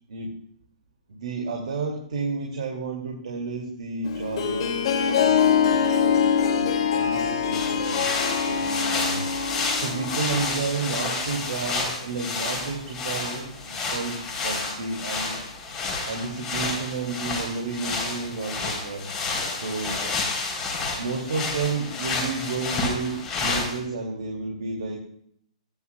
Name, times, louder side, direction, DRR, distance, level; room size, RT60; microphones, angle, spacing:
voice 1, 1.1-4.7 5.2-9.3 9.8-15.4 16.0-19.1 19.5-20.1 21.0-25.0, right 4 dB, 75° right, 0 dB, 2.6 m, -31 dB
Harp, 4.0-10.6, left 7 dB, 50° left, 2.5 m, -24 dB
sound 1, 7.5-23.8, left 3 dB, 15° left, 3.8 m, -30 dB
15.0 x 10.5 x 2.4 m, 0.67 s
hypercardioid pair, 150°, 4 cm